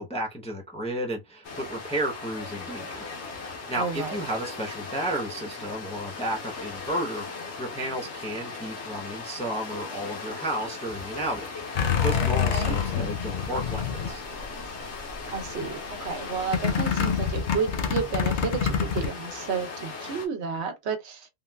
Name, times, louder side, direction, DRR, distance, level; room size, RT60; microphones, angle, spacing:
voice 1, 0.0-3.1 3.4-14.2, right 1 dB, 5° left, 0.5 m, -33 dB
sound 1, 1.4-20.3, left 4 dB, 75° left, 1.2 m, -38 dB
voice 2, 3.7-4.2 12.5-12.8 15.3-21.3, right 5 dB, 75° right, 0.9 m, -31 dB
sound 2, 11.8-14.7 15.1-15.7 16.5-19.1, left 7 dB, 55° left, 0.6 m, -26 dB
3.6 x 2.2 x 2.2 m
omnidirectional pair, 1.2 m